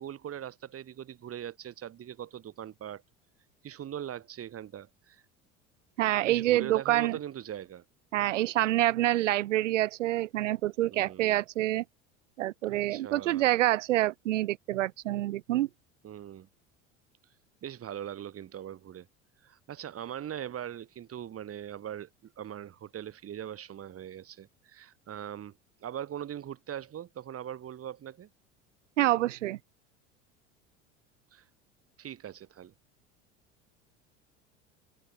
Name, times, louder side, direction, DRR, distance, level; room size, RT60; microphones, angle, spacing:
voice 1, 0.0-3.0 3.6-5.2 6.2-7.8 10.9-11.4 12.6-13.6 16.0-16.5 17.6-19.1 19.4-28.3 31.3-31.4 32.0-32.7, right 10 dB, 40° right, 4.3 m, -41 dB
voice 2, 6.0-7.2 8.1-11.8 12.4-15.7 29.0-29.6, right 15 dB, 80° right, 0.6 m, -27 dB
open air
figure-of-eight pair, 70°, 37 cm